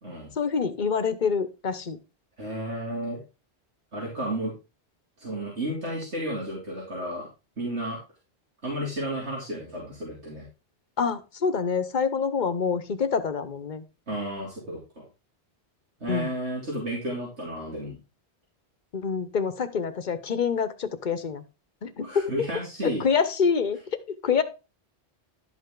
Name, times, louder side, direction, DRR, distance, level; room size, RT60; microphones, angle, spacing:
voice 1, 0.4-2.0 11.0-13.8 16.1-16.3 18.9-21.4 21.8-22.1 22.8-23.8 24.1-24.4, left 6 dB, 45° left, 11 dB, 1.0 m, -26 dB
voice 2, 2.4-3.2 3.9-4.5 5.2-7.3 7.6-8.0 8.6-10.4 14.1-15.0 16.0-18.0 22.0-23.0, right 1 dB, 85° right, -4 dB, 3.4 m, -32 dB
11.5 x 5.6 x 3.8 m, 0.28 s
omnidirectional pair, 1.1 m